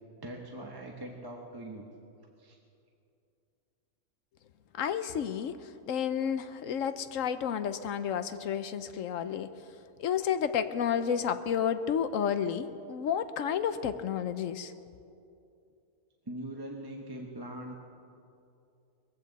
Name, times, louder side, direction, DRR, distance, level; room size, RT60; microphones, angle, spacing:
voice 1, 0.2-1.9 2.4-2.6 16.3-17.7, right 1 dB, 15° right, 0 dB, 1.0 m, -41 dB
voice 2, 4.7-9.5 10.0-14.7, left 8 dB, 65° left, 11 dB, 1.0 m, -31 dB
21.0 x 15.5 x 4.1 m, 2.6 s
omnidirectional pair, 1.5 m